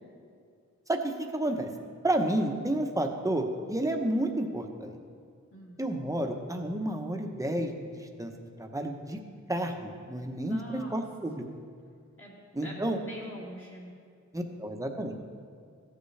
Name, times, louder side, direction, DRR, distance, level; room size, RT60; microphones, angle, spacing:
voice 1, 0.9-1.7 2.0-5.0 5.8-8.3 8.6-9.2 9.5-11.4 12.5-13.0 14.3-15.2, right 1 dB, 10° right, 3 dB, 0.9 m, -31 dB
voice 2, 5.5-5.8 10.5-11.0 12.2-13.9, left 1 dB, 45° left, -5 dB, 2.5 m, -45 dB
14.5 x 8.1 x 3.3 m, 2.2 s
wide cardioid pair, 95°, 31 cm